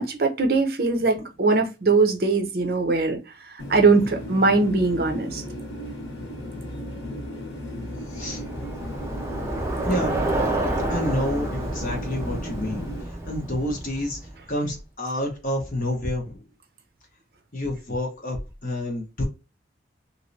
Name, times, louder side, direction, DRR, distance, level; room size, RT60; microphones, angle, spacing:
voice 1, 0.0-3.2 3.5-5.4, right 3 dB, 55° right, 0.6 m, -21 dB
sound 1, 3.6-13.0, equal, 80° left, 1.0 m, -36 dB
Bicycle, 8.0-14.5, right 1 dB, 15° right, 0.5 m, -29 dB
voice 2, 8.1-8.8 9.8-10.6 10.9-14.2 14.5-16.4 17.5-18.4 18.6-19.2, left 1 dB, 45° left, 1.1 m, -29 dB
3.1 x 2.8 x 2.6 m
head